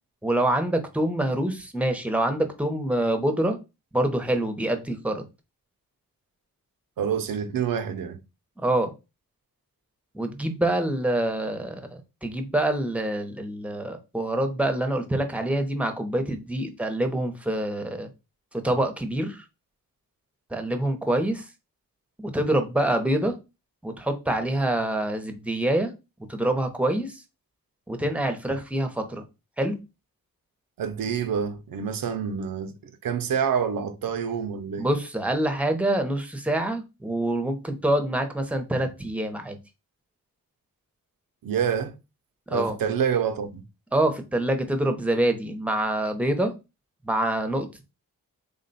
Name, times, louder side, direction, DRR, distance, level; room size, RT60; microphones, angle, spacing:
voice 1, 0.2-3.6 3.9-5.2 8.6-8.9 10.1-18.1 18.5-19.4 20.5-21.5 22.2-23.3 23.8-25.9 26.3-27.2 27.9-29.2 29.6-29.8 34.8-39.6 42.5-42.8 43.9-46.5 47.0-47.8, right 1 dB, 5° right, 0.6 m, -26 dB
voice 2, 7.0-8.2 30.8-34.9 41.4-42.0 42.5-43.6, right 7 dB, 80° right, 0.5 m, -27 dB
3.4 x 2.2 x 3.9 m
wide cardioid pair, 90°, 34 cm